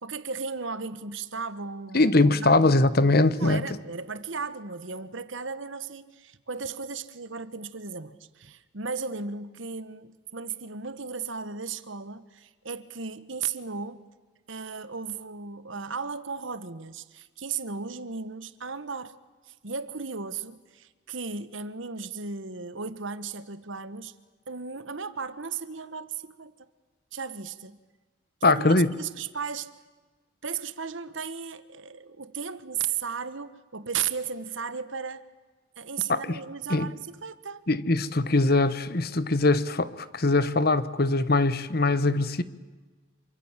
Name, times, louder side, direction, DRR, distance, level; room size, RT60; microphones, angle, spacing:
voice 1, 0.0-2.8 3.3-14.0 14.5-19.1 19.5-24.1 24.5-26.5 27.1-27.8 28.4-29.7 30.4-35.3 35.8-37.7, right 5 dB, 70° right, 1.4 m, -35 dB
voice 2, 1.9-3.6 28.4-28.9 36.1-36.4 36.7-36.9 37.7-42.4, left 2 dB, 50° left, 1.1 m, -22 dB
27.5 x 25.0 x 7.4 m
head